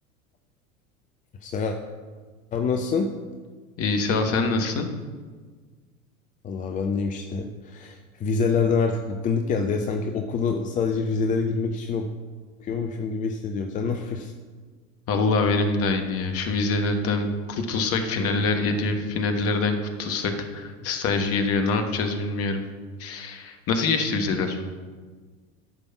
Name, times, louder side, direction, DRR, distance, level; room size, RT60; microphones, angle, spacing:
voice 1, 1.4-1.8 2.5-3.1 6.4-12.1 12.6-14.3, left 5 dB, 20° left, 5 dB, 0.6 m, -26 dB
voice 2, 3.8-4.9 15.1-22.6 23.0-24.6, left 3 dB, 35° left, 6 dB, 1.4 m, -25 dB
13.0 x 5.3 x 5.9 m, 1.5 s
figure-of-eight pair, 80°, 41 cm